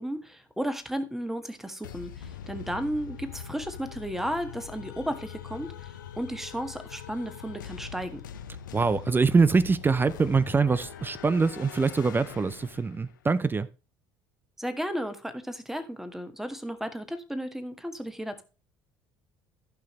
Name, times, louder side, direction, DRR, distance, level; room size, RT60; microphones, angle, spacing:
voice 1, 0.0-8.2 14.6-18.4, equal, 5° right, 1.6 m, -34 dB
sound 1, 1.8-13.2, left 8 dB, 80° left, 0.8 m, -43 dB
voice 2, 8.7-13.7, right 4 dB, 20° right, 0.6 m, -24 dB
15.0 x 5.8 x 3.2 m
figure-of-eight pair, 60°, 10 cm